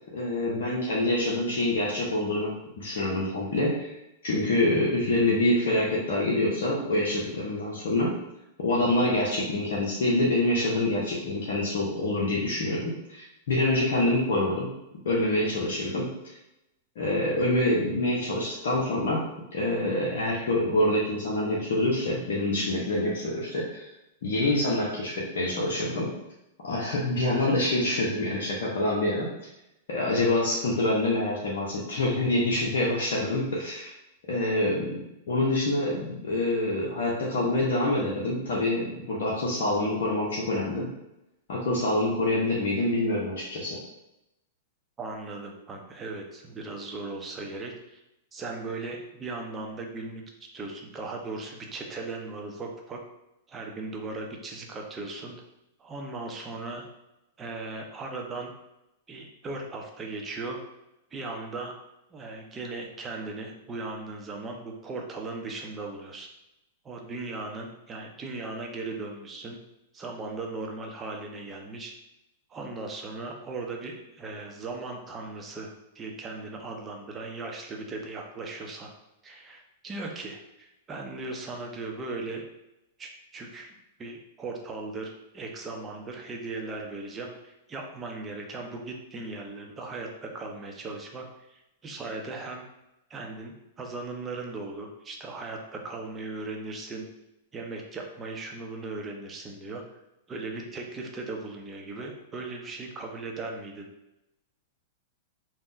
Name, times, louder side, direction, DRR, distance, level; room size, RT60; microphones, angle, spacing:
voice 1, 0.1-4.0 4.2-8.2 8.6-14.8 15.0-16.2 17.0-23.9 24.2-26.1 26.6-29.5 29.9-33.9 34.3-40.9 41.5-43.8, left 1 dB, 65° left, -5 dB, 0.6 m, -26 dB
voice 2, 45.0-48.0 48.3-50.2 50.5-53.0 53.5-55.3 55.8-56.9 57.4-58.5 59.1-60.6 61.1-61.7 62.1-66.3 66.8-69.6 69.9-71.9 72.5-78.9 79.2-82.4 83.0-92.6 93.1-97.0 97.5-99.8 100.3-103.9, right 3 dB, 20° right, 1 dB, 0.6 m, -38 dB
3.5 x 2.1 x 2.6 m, 0.91 s
hypercardioid pair, 110°, 0 cm